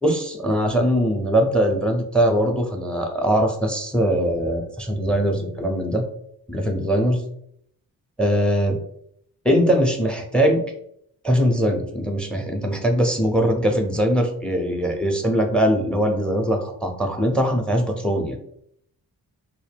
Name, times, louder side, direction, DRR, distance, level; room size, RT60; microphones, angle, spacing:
voice 1, 0.0-6.0 6.5-7.2 8.2-8.8 9.4-10.6 11.2-18.4, equal, 5° left, 3 dB, 0.6 m, -21 dB
2.1 x 2.1 x 3.3 m, 0.69 s
cardioid pair, 50°, 38 cm